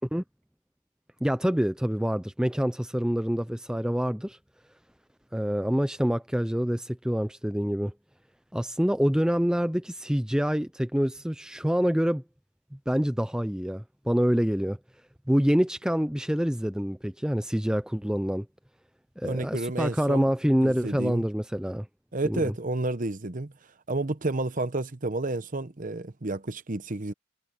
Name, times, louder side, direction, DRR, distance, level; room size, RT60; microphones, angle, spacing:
voice 1, 1.2-4.4 5.3-7.9 8.5-12.2 12.9-14.8 15.3-18.5 19.2-21.9 22.2-22.5, equal, 5° right, 0.5 m, -26 dB
voice 2, 19.2-20.3 20.6-21.3 22.1-23.5 23.9-27.1, right 2 dB, 40° right, 0.9 m, -30 dB
head